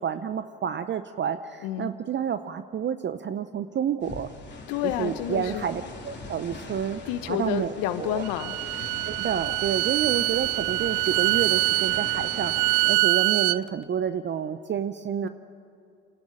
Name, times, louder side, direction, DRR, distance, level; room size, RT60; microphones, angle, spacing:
voice 1, 0.0-4.3 5.0-7.0 7.3-8.2 9.0-15.3, right 8 dB, 30° right, 11 dB, 0.7 m, -29 dB
sound 1, 4.0-13.0, left 3 dB, 30° left, 3.4 m, -41 dB
voice 2, 4.7-5.7 7.1-8.5 15.2-15.3, left 12 dB, 65° left, 11 dB, 1.1 m, -29 dB
Bowed string instrument, 8.2-13.6, right 22 dB, 75° right, 0.5 m, -24 dB
26.5 x 11.5 x 8.9 m, 2.6 s
hypercardioid pair, 80°, 36 cm